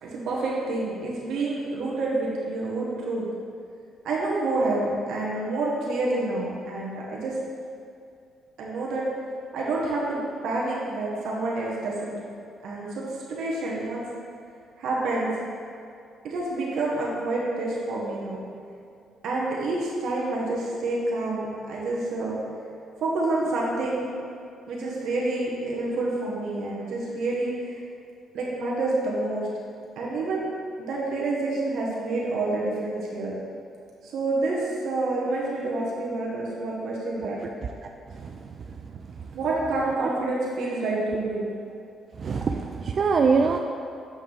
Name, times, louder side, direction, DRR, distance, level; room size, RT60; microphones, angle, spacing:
voice 1, 0.0-3.3 4.0-7.3 8.6-9.1 9.5-10.2 10.4-12.2 12.6-14.0 14.8-15.3 16.2-18.4 19.2-22.4 23.0-24.1 24.7-27.8 28.3-29.5 30.0-30.5 30.8-33.4 34.0-37.4 39.3-41.5, right 2 dB, 75° right, -5 dB, 1.2 m, -28 dB
voice 2, 38.1-39.3 40.0-40.1 42.1-43.6, right 5 dB, 50° right, 3 dB, 0.3 m, -25 dB
7.0 x 5.7 x 3.4 m, 2.5 s
cardioid pair, 90°, 0 cm